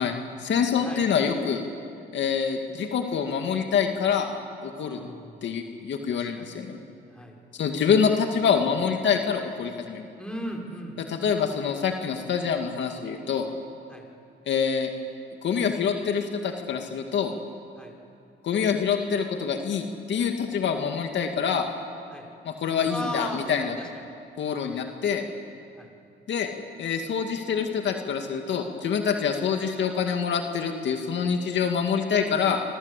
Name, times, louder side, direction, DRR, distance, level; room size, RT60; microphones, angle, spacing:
voice 1, 0.0-1.6 2.1-4.3 4.6-5.0 5.4-6.8 7.5-10.0 11.0-13.5 14.5-14.9 15.4-17.3 18.4-21.7 22.4-23.7 24.4-25.2 26.3-26.5 26.8-32.6, left 6 dB, 65° left, 4 dB, 2.2 m, -26 dB
voice 2, 4.7-5.5 6.1-6.6 7.1-7.4 10.2-11.0 13.9-14.0 17.8-17.9 22.1-22.3 22.9-23.9 24.6-24.8 25.8-25.9, equal, 5° left, 0 dB, 5.7 m, -37 dB
27.0 x 25.5 x 8.4 m, 2.5 s
cardioid pair, 90°, 20 cm